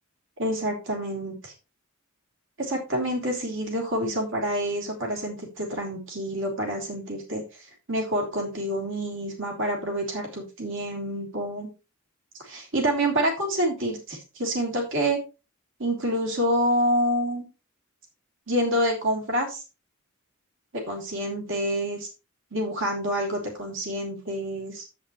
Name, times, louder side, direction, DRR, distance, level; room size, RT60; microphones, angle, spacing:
voice 1, 0.4-1.5 2.6-7.4 7.9-11.7 12.4-15.2 15.8-17.5 18.5-19.6 20.7-22.1 22.5-24.8, equal, 60° right, 1 dB, 3.1 m, -27 dB
10.0 x 8.5 x 3.1 m, 0.29 s
head